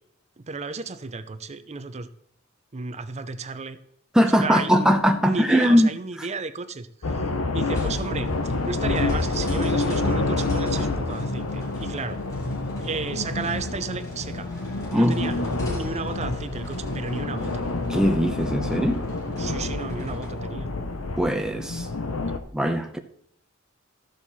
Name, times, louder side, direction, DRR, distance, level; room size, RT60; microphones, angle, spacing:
voice 1, 0.5-2.1 2.7-3.8 4.4-7.2 7.5-8.3 8.6-12.2 12.8-14.5 14.9-15.3 15.6-17.6 19.4-20.7, right 4 dB, 30° right, 0.6 m, -33 dB
voice 2, 4.1-5.9 6.2-6.3 14.9-15.3 17.9-19.0 21.2-21.9 22.5-23.0, equal, 5° right, 0.8 m, -21 dB
sound 1, 7.0-22.4, left 2 dB, 90° left, 1.0 m, -28 dB
sound 2, 7.7-20.5, equal, 15° left, 2.2 m, -45 dB
13.5 x 6.6 x 4.2 m
head